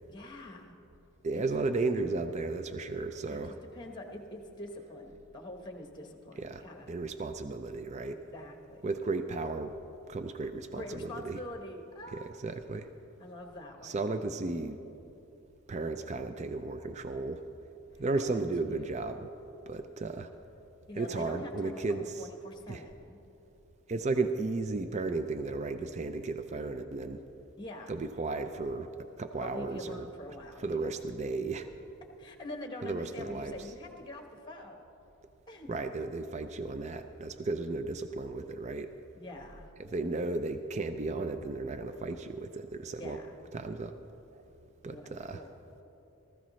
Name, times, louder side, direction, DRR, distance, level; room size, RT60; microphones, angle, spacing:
voice 1, 0.1-0.8 1.3-1.4 3.3-3.4 3.7-6.9 8.1-8.8 10.7-12.3 13.2-14.1 17.9-18.9 20.9-23.2 27.6-27.9 29.4-30.9 32.2-34.8 35.5-35.7 39.1-39.7 42.9-43.4 44.9-45.5, left 1 dB, 20° left, 3 dB, 1.1 m, -45 dB
voice 2, 1.2-3.5 6.4-6.6 6.9-8.3 8.8-9.7 10.1-11.4 12.1-12.9 13.8-14.8 15.7-17.4 18.0-19.3 19.7-20.3 21.0-22.3 22.7-22.8 23.9-27.2 27.9-30.1 30.6-31.7 32.8-33.6 35.7-38.9 39.8-43.2 43.5-43.9 44.3-44.4 44.8-45.4, right 3 dB, 30° right, 9 dB, 0.4 m, -34 dB
19.5 x 14.0 x 3.1 m, 2.8 s
head